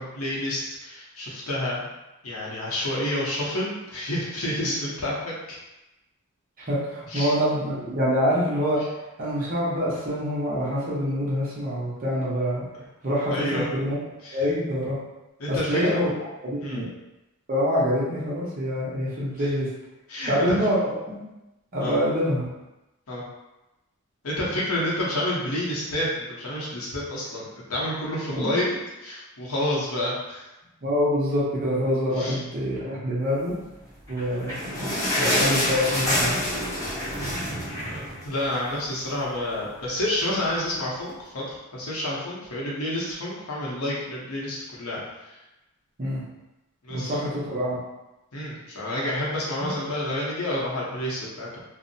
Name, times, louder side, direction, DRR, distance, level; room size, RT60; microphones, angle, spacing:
voice 1, 0.0-1.9 2.2-5.6 7.1-7.3 13.3-13.7 14.2-14.4 15.4-16.0 16.6-16.8 20.1-20.6 21.8-22.0 23.1-23.2 24.2-28.7 29.0-30.4 32.2-32.4 34.3-34.5 37.8-45.4 46.8-47.1 48.3-51.6, left 1 dB, 80° left, -5 dB, 0.8 m, -29 dB
voice 2, 6.6-8.9 9.2-12.7 13.0-14.0 14.3-14.9 15.5-16.1 16.4-16.9 17.5-19.7 20.3-21.2 21.7-22.5 28.3-28.6 30.8-33.5 34.1-36.5 46.0-46.2 46.9-47.8 49.6-49.7, equal, 40° right, -8 dB, 0.8 m, -26 dB
sound 1, 34.0-38.8 39.1-39.2 39.5-39.7 40.4-40.5, left 1 dB, 15° left, 0.8 m, -27 dB
2.6 x 2.1 x 2.6 m, 0.98 s
head